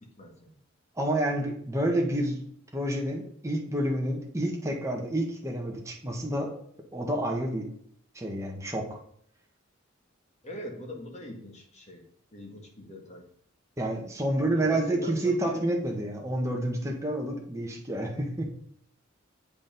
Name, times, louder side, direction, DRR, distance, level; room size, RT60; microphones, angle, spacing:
voice 1, 0.0-0.5 10.4-12.0 12.3-13.2 14.6-15.6, equal, 35° left, 1 dB, 2.0 m, -41 dB
voice 2, 0.9-2.4 2.7-6.5 6.9-7.7 8.1-9.0 13.8-18.5, right 1 dB, 15° right, 0 dB, 1.7 m, -29 dB
8.4 x 5.3 x 5.3 m, 0.66 s
head